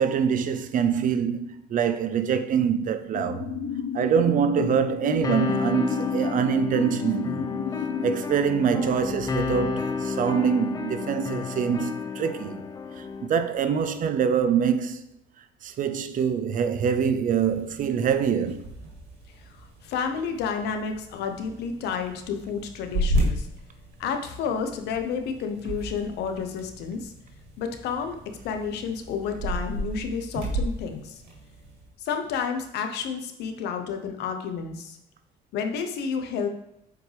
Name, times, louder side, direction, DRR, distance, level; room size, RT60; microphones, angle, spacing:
voice 1, 0.0-3.5 3.9-7.5 8.0-12.6 13.0-15.0 15.6-18.7, right 7 dB, 50° right, 0.6 m, -25 dB
sound 1, 3.1-8.1, left 7 dB, 65° left, 0.6 m, -32 dB
sound 2, 5.2-13.3, left 4 dB, 20° left, 0.4 m, -31 dB
sound 3, 17.2-31.9, equal, 85° right, 2.0 m, -34 dB
voice 2, 19.5-23.5 24.0-27.1 27.6-31.2 32.0-35.0 35.5-36.5, left 6 dB, 80° left, 1.0 m, -30 dB
7.7 x 5.0 x 3.4 m
cardioid pair, 110°, 17 cm